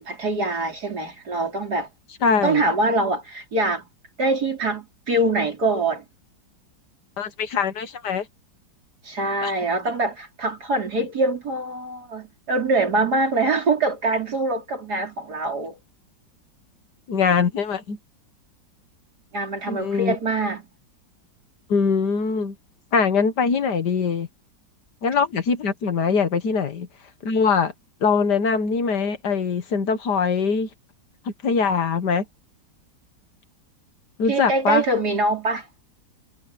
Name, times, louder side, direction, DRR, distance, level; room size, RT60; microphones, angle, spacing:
voice 1, 0.0-1.9 2.4-3.9 4.2-6.1 9.0-15.8 19.3-20.7 34.3-35.8, right 2 dB, 55° right, 4.3 m, -24 dB
voice 2, 2.2-2.6 7.2-8.3 9.4-9.5 17.1-18.0 19.7-20.2 21.7-22.6 22.9-24.3 25.0-26.9 27.2-27.7 28.0-30.7 31.3-32.2 34.2-34.8, left 5 dB, 65° left, 1.9 m, -22 dB
omnidirectional pair, 2.0 m